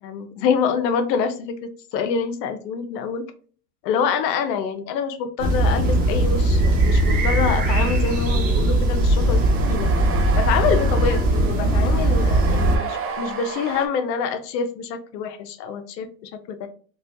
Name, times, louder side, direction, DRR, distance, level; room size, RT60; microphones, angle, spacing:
voice 1, 0.0-3.2 3.8-9.4 9.7-9.9 10.4-16.7, left 6 dB, 80° left, 8 dB, 0.7 m, -26 dB
sound 1, 5.4-12.8, right 1 dB, 45° right, 1.2 m, -19 dB
sound 2, 8.7-13.9, right 5 dB, 25° right, 0.5 m, -33 dB
4.1 x 2.3 x 2.5 m, 0.42 s
supercardioid pair, 110°, 49 cm